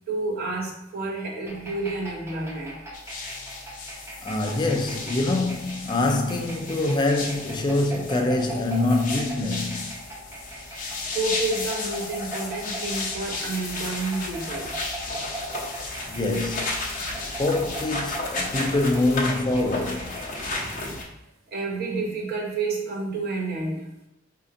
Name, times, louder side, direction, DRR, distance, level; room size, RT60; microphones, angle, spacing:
voice 1, 0.1-2.8 5.1-5.2 11.1-14.7 20.6-21.0 21.5-23.9, right 3 dB, 50° right, 0.8 m, -30 dB
sound 1, 1.5-20.8, right 1 dB, 15° right, 0.6 m, -40 dB
sound 2, 2.9-21.0, left 3 dB, 40° left, 0.7 m, -34 dB
voice 2, 4.2-10.0 16.1-16.8 17.4-20.1, left 2 dB, 25° left, 0.4 m, -25 dB
4.2 x 2.7 x 2.5 m
head